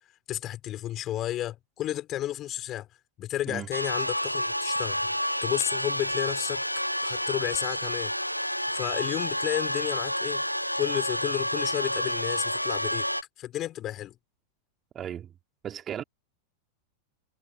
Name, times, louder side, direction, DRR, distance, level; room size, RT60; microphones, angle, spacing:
voice 1, 0.3-2.9 3.2-5.1 5.4-6.6 7.0-8.1 8.7-10.4 10.8-13.1 13.4-14.2, left 13 dB, 30° left, 5.3 m, -32 dB
sound 1, 3.7-13.2, equal, 90° left, 1.5 m, -29 dB
voice 2, 14.9-15.3 15.6-16.0, right 9 dB, 25° right, 3.1 m, -35 dB
figure-of-eight pair, 90°, 0 cm